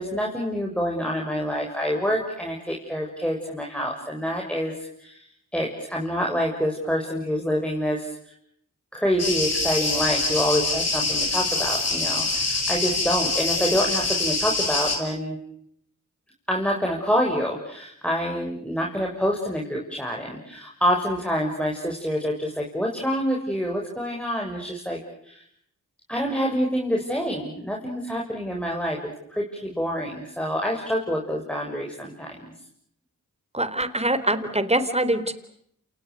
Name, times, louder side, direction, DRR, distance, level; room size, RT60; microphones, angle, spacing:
voice 1, 0.0-5.2 5.5-8.3 8.9-15.4 16.5-25.4 26.1-29.0 29.3-32.5, equal, 5° left, -1 dB, 7.2 m, -27 dB
sound 1, 9.2-15.0, left 3 dB, 50° left, 7.7 m, -25 dB
voice 2, 33.5-35.3, right 1 dB, 20° right, 13 dB, 4.1 m, -24 dB
29.0 x 29.0 x 6.6 m, 0.71 s
cardioid pair, 45°, 32 cm